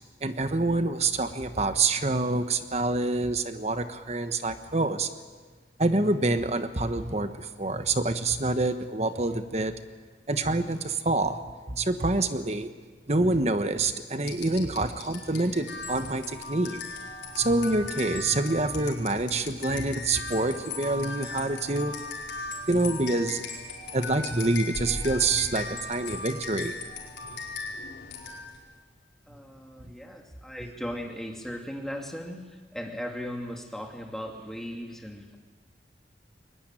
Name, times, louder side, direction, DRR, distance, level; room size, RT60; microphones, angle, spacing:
voice 1, 0.2-5.1 5.8-9.8 10.3-11.4 11.7-12.7 13.1-16.8 17.3-21.9 22.7-23.5 23.9-26.7, right 2 dB, 35° right, 9 dB, 1.3 m, -26 dB
sound 1, 14.2-28.7, left 3 dB, 80° left, 4.9 m, -38 dB
voice 2, 29.3-35.4, equal, ahead, 1 dB, 2.7 m, -37 dB
22.0 x 20.5 x 9.1 m, 1.4 s
head